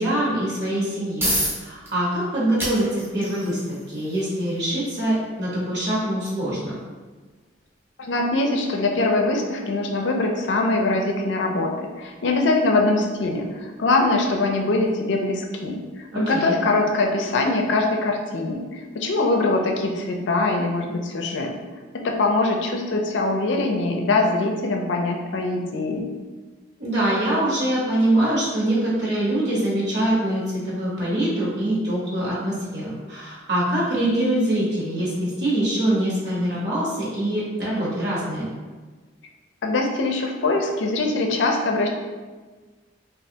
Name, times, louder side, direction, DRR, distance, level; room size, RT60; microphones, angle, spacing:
voice 1, 0.0-6.7 16.1-16.6 26.8-38.5, right 1 dB, 60° right, -6 dB, 1.1 m, -24 dB
sound 1, 0.9-15.6, equal, 10° right, 0.6 m, -36 dB
voice 2, 8.0-21.5 21.9-26.1 39.6-41.9, left 2 dB, 70° left, 2 dB, 0.4 m, -23 dB
3.2 x 2.4 x 2.7 m, 1.3 s
head